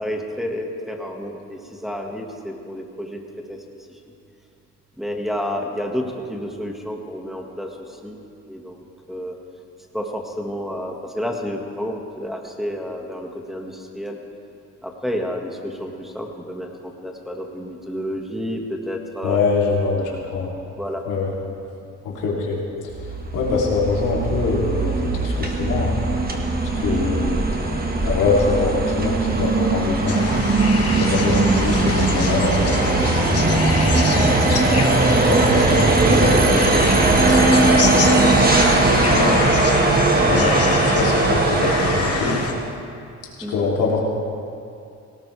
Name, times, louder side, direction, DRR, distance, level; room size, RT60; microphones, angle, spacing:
voice 1, 0.0-3.2 3.5-3.6 5.0-7.7 8.0-8.2 8.5-9.4 9.9-14.2 14.8-19.4 20.7-21.1 26.9-27.1 35.3-35.5 40.4-40.6 43.4-43.6, equal, ahead, 1 dB, 1.9 m, -30 dB
voice 2, 19.2-20.5 21.1-21.3 22.0-26.0 26.7-27.6 28.0-30.3 30.9-34.7 35.1-39.4 40.2-42.4 43.5-44.0, left 4 dB, 85° left, -4 dB, 3.4 m, -24 dB
sound 1, 22.9-42.7, right 2 dB, 30° right, 1.7 m, -19 dB
sound 2, 30.1-42.5, left 6 dB, 50° left, 1.2 m, -29 dB
18.0 x 18.0 x 3.5 m, 2.5 s
cardioid pair, 90°, 30 cm